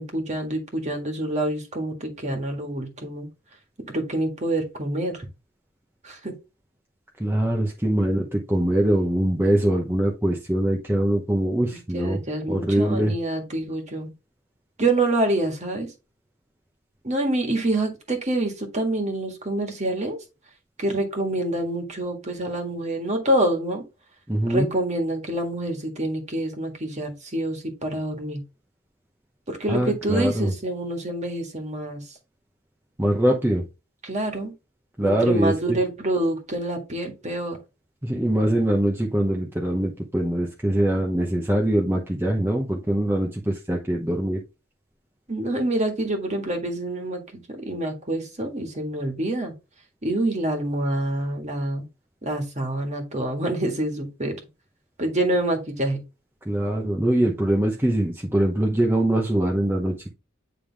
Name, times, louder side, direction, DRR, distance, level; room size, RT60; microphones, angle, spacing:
voice 1, 0.0-3.3 3.9-5.3 6.0-6.3 11.9-14.1 14.8-15.9 17.0-20.2 20.8-23.8 24.5-28.4 29.5-32.0 34.0-34.5 35.0-37.6 45.3-49.5 50.0-51.8 52.2-54.3 55.0-56.0, right 1 dB, 35° right, 3 dB, 1.7 m, -26 dB
voice 2, 7.2-12.2 12.5-13.1 24.3-24.7 29.7-30.5 33.0-33.7 35.0-35.8 38.0-44.4 56.4-60.1, right 1 dB, 10° right, 0 dB, 0.8 m, -23 dB
9.1 x 3.4 x 3.4 m, 0.28 s
head